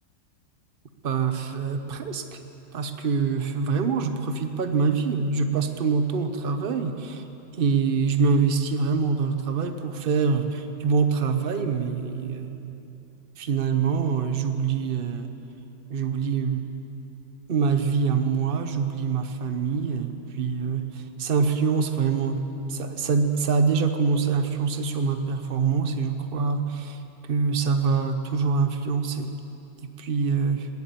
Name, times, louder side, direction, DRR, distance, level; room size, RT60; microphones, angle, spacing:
voice 1, 1.0-2.4 2.7-7.2 7.6-12.8 13.4-15.3 15.9-16.7 17.5-20.8 21.2-22.4 22.7-27.0 27.3-29.3 30.0-30.7, right 5 dB, 55° right, 8 dB, 0.6 m, -25 dB
19.5 x 8.5 x 8.5 m, 2.9 s
omnidirectional pair, 2.1 m